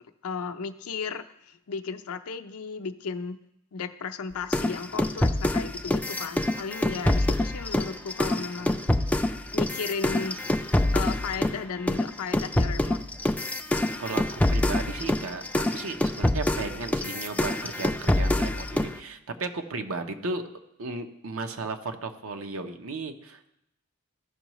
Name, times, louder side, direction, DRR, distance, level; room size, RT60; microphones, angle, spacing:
voice 1, 0.2-3.4 3.7-8.8 9.5-10.4 10.9-13.0, left 5 dB, 85° left, 7 dB, 0.5 m, -35 dB
sound 1, 4.5-11.6 11.9-19.0, left 1 dB, 5° left, 0.3 m, -26 dB
voice 2, 14.0-20.4 20.8-23.5, right 3 dB, 70° right, 7 dB, 0.7 m, -35 dB
14.5 x 5.5 x 3.0 m, 0.81 s
head